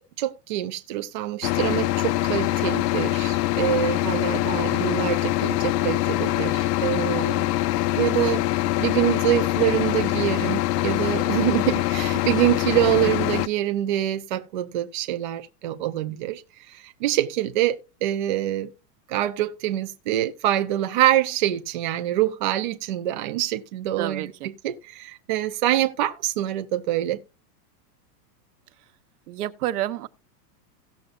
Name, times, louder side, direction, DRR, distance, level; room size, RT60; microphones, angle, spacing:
voice 1, 0.2-7.5 8.0-8.4 8.8-18.7 19.1-27.2, right 13 dB, 30° right, 0.4 m, -25 dB
sound 1, 1.4-13.5, left 16 dB, 70° left, 0.7 m, -24 dB
voice 2, 24.0-24.5 29.3-30.1, right 13 dB, 60° right, 1.1 m, -30 dB
17.5 x 6.7 x 2.4 m
supercardioid pair, 170°, 50 cm